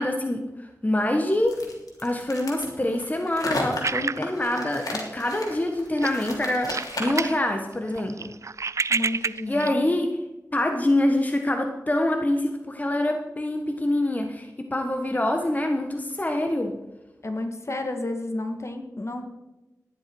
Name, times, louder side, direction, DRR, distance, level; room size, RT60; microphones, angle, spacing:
voice 1, 0.0-1.6 2.0-8.3 9.5-10.1 10.5-16.8, left 1 dB, 25° left, 4 dB, 1.3 m, -25 dB
sound 1, 1.5-7.4, left 2 dB, 85° left, 3.0 m, -34 dB
sound 2, 3.8-5.2 5.5-5.7 6.0-7.4 7.7-9.7, right 4 dB, 55° right, 0.3 m, -29 dB
voice 2, 8.9-9.8 17.2-19.2, left 2 dB, 50° left, 5 dB, 1.9 m, -31 dB
12.5 x 10.5 x 4.7 m, 1.0 s
wide cardioid pair, 55°, 6 cm